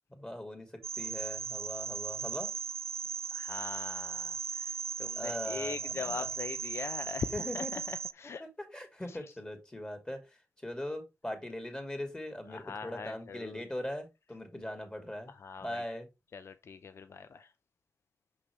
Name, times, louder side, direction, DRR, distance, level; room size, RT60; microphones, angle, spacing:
voice 1, 0.1-2.5 5.1-6.3 7.3-7.7 8.4-15.3 15.6-16.1, left 1 dB, 20° left, 2.6 m, -40 dB
sound 1, 0.8-8.1, right 6 dB, 65° right, 0.4 m, -37 dB
voice 2, 3.3-8.5 9.1-9.2 12.5-13.6 15.3-15.8 16.3-17.5, left 5 dB, 65° left, 0.5 m, -41 dB
6.0 x 6.0 x 3.3 m
cardioid pair, 70°, 5 cm